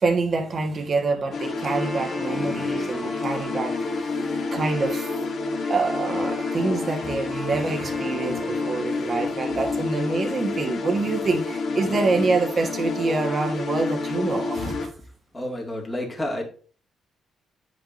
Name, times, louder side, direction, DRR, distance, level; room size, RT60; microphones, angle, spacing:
voice 1, 0.0-3.8 4.5-5.1 5.7-14.9, right 3 dB, 45° right, 1.3 m, -26 dB
sound 1, 1.3-14.9, left 3 dB, 60° left, 1.1 m, -29 dB
Wind instrument woodwind instrument, 1.6-9.6, right 2 dB, 10° right, 1.1 m, -40 dB
voice 2, 15.3-16.4, left 1 dB, 20° left, 2.1 m, -30 dB
10.0 x 5.1 x 2.6 m
cardioid pair, 90°, 0 cm